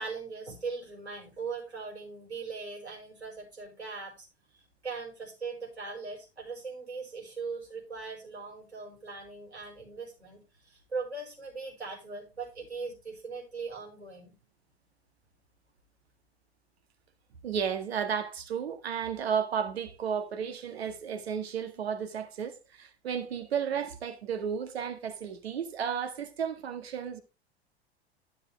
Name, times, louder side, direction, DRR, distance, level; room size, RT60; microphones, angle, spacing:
voice 1, 0.0-4.3 4.8-14.3, right 4 dB, 90° right, 5.4 m, -40 dB
voice 2, 17.4-27.2, right 7 dB, 70° right, 1.8 m, -33 dB
12.0 x 7.3 x 3.4 m
figure-of-eight pair, 80°, 32 cm